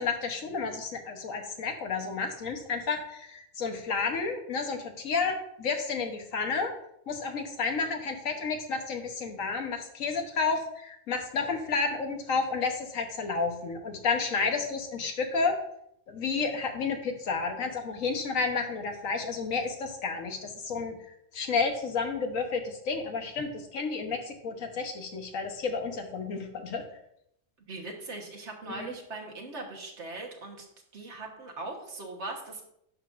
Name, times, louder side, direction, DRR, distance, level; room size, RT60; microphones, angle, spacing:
voice 1, 0.0-6.7 7.1-15.5 16.1-21.0 21.3-26.8 28.8-28.9, left 4 dB, 85° left, 4 dB, 1.5 m, -31 dB
voice 2, 27.7-30.7 30.9-32.6, right 2 dB, 60° right, 1 dB, 1.6 m, -40 dB
10.5 x 6.7 x 2.5 m, 0.76 s
omnidirectional pair, 1.3 m